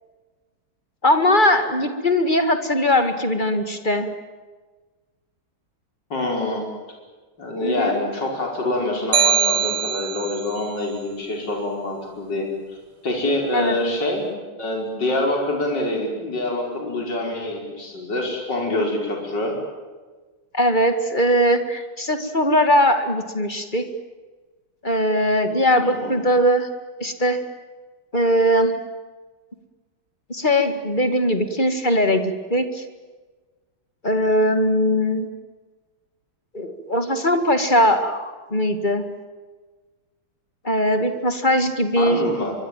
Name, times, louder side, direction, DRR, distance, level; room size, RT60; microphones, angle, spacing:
voice 1, 1.0-4.1 7.6-8.0 13.5-13.8 20.5-23.9 24.8-26.7 27.0-27.4 28.1-28.7 30.3-32.8 34.0-35.3 36.5-39.0 40.6-42.2, equal, 20° left, 8 dB, 2.2 m, -20 dB
voice 2, 6.1-6.7 7.4-12.5 13.0-19.5 25.8-26.3 42.0-42.5, left 2 dB, 55° left, 1 dB, 5.8 m, -25 dB
sound 1, 9.1-10.5, right 8 dB, 75° right, 2.2 m, -21 dB
24.5 x 23.0 x 9.2 m, 1.3 s
omnidirectional pair, 2.3 m